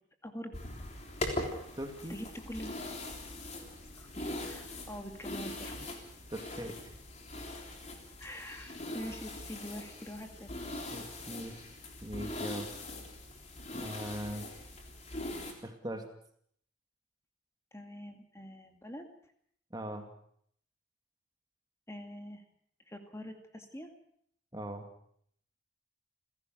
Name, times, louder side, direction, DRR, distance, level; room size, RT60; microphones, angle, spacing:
voice 1, 0.2-0.5 2.1-2.8 4.0-5.7 8.2-10.7 17.7-19.1 21.9-22.4 22.9-23.9, equal, 15° left, 5 dB, 2.3 m, -44 dB
sound 1, 0.5-15.5, left 1 dB, 35° left, 3.6 m, -41 dB
voice 2, 1.8-2.2 6.3-6.9 10.9-11.6 12.0-12.7 13.7-14.5 15.6-16.1 19.7-20.1 24.5-24.9, right 1 dB, 20° right, 5 dB, 2.2 m, -40 dB
29.0 x 16.5 x 6.4 m, 0.65 s
head